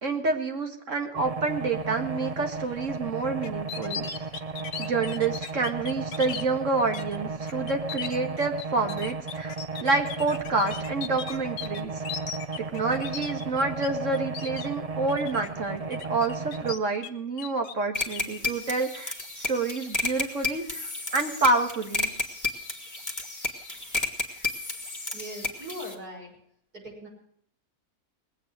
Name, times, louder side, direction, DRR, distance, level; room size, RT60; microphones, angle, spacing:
voice 1, 0.0-4.0 4.8-9.5 9.8-11.9 12.7-22.1, right 3 dB, 55° right, 5 dB, 2.2 m, -28 dB
sound 1, 1.1-16.7, right 4 dB, 30° right, 0.9 m, -35 dB
sound 2, 3.4-6.4 6.9-7.2 7.5-13.9 14.1-14.7 15.1-15.5 15.9-17.1 17.4-18.4, left 7 dB, 80° left, 1.5 m, -38 dB
sound 3, 17.9-25.9, left 3 dB, 10° left, 1.8 m, -32 dB
voice 2, 25.1-26.4 26.7-27.1, equal, 85° right, -3 dB, 7.3 m, -40 dB
20.0 x 8.7 x 6.3 m, 0.65 s
omnidirectional pair, 1.6 m